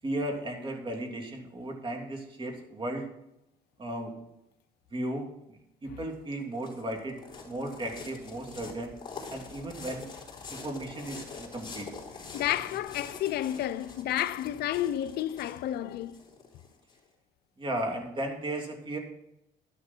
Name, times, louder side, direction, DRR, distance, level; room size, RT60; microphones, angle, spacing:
voice 1, 0.0-3.1 3.8-4.1 4.9-7.2 7.4-8.9 9.3-10.1 10.5-11.9 17.6-19.0, right 1 dB, 30° right, 3.0 m, -35 dB
sound 1, 6.1-16.9, left 4 dB, 25° left, 3.9 m, -45 dB
voice 2, 12.3-16.2, left 12 dB, 70° left, 0.5 m, -31 dB
12.0 x 11.0 x 4.4 m
cardioid pair, 110°, 17 cm